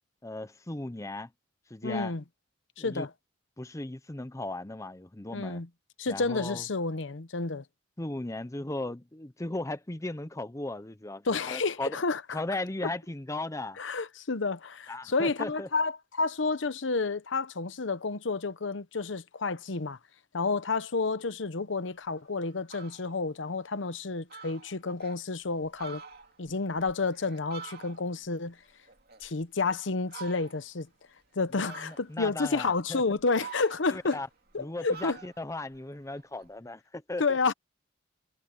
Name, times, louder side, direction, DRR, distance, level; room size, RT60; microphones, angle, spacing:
voice 1, 0.2-1.3 1.7-2.1 2.8-3.1 3.6-5.6 6.1-6.6 8.0-12.0 12.3-13.8 14.9-15.7 31.6-33.0 33.9-34.3 34.6-37.4, left 2 dB, 15° left, 0.7 m, -37 dB
voice 2, 1.8-2.2 2.8-3.1 5.3-5.7 6.0-7.6 11.2-12.4 13.8-20.0 20.3-26.0 26.4-28.6 29.2-30.9 31.4-34.2 34.5-35.2 37.2-37.5, left 3 dB, 70° left, 0.9 m, -30 dB
Fowl, 22.1-22.2 22.5-23.1 23.6-23.7 24.0-24.1 24.3-25.2 25.6-28.3 28.6-29.6 30.1-30.8 31.7-32.3 32.9-34.6 34.9-36.5, right 6 dB, 55° right, 2.7 m, -48 dB
head